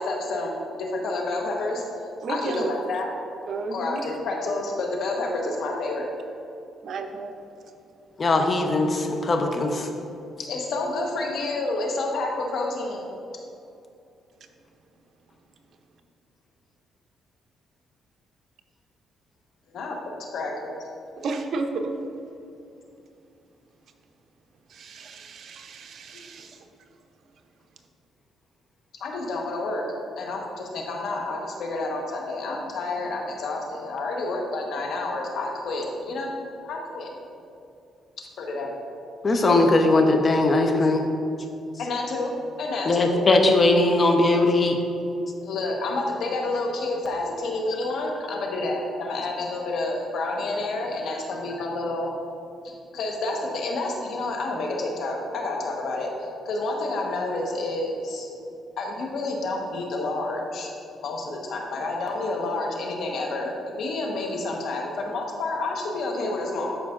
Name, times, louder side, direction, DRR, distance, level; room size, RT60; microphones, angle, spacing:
voice 1, 0.0-1.8 2.3-3.1 3.7-6.1 10.5-13.1 19.7-19.9 20.3-20.7 29.0-29.8 30.2-36.4 36.6-37.1 38.4-38.7 41.8-42.3 42.6-43.2 45.4-52.1 52.6-58.3 58.8-60.7 61.0-66.8, left 2 dB, 70° left, 0 dB, 1.2 m, -29 dB
voice 2, 2.2-2.7 3.5-4.0 6.8-7.3 21.2-21.9 24.7-26.6, right 3 dB, 60° right, 5 dB, 0.7 m, -32 dB
voice 3, 8.2-9.9 39.2-41.0 42.9-44.8, left 2 dB, 35° left, 3 dB, 0.9 m, -20 dB
12.0 x 5.0 x 2.6 m, 2.7 s
cardioid pair, 90°, 0 cm